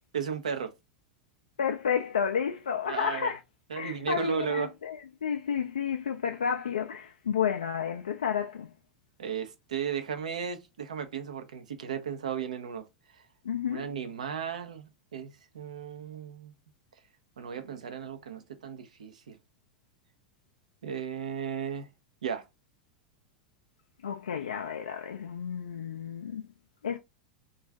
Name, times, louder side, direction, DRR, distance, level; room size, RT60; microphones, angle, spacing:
voice 1, 0.1-0.7 2.9-3.3 3.7-4.7 9.2-12.8 13.7-16.5 17.4-19.4 20.8-21.9 22.2-22.4, right 7 dB, 75° right, 0.6 m, -35 dB
voice 2, 1.6-3.4 3.7-8.7 13.4-13.9 24.0-26.4 26.8-27.0, left 7 dB, 75° left, 0.3 m, -31 dB
2.5 x 2.3 x 3.3 m
figure-of-eight pair, 85°, 4 cm